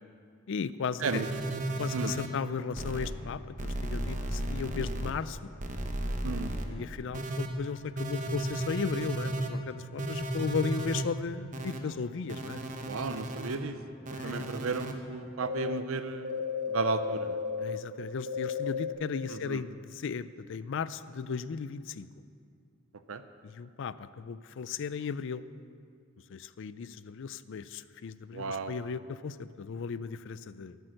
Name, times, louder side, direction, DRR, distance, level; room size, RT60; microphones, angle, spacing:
voice 1, 0.5-1.2 1.8-5.5 6.7-12.6 14.1-14.5 17.6-22.1 23.4-25.4 26.3-30.8, left 5 dB, 60° left, 15 dB, 0.4 m, -36 dB
sound 1, 1.0-2.3 2.8-3.1 3.6-5.1 5.6-6.7 7.1-7.5 8.0-9.5 10.0-11.0 11.5-11.8 12.3-13.6 14.1-14.9 15.4-15.7 16.2-17.8 18.3-18.9, equal, 35° right, 0.9 m, -34 dB
voice 2, 12.9-13.8 14.2-16.3 16.7-17.4 19.3-19.6 23.1-23.2 28.3-28.7, right 4 dB, 70° right, 10 dB, 0.6 m, -33 dB
13.5 x 8.3 x 6.4 m, 2.3 s
head